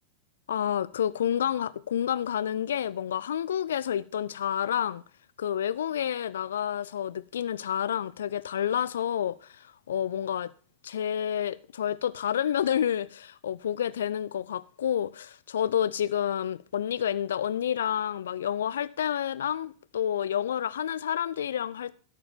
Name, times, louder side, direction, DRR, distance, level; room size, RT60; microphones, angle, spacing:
voice 1, 0.5-5.0 5.4-10.5 10.8-21.9, left 9 dB, 65° left, 0.5 m, -29 dB
12.5 x 4.7 x 6.6 m
figure-of-eight pair, 90°, 0 cm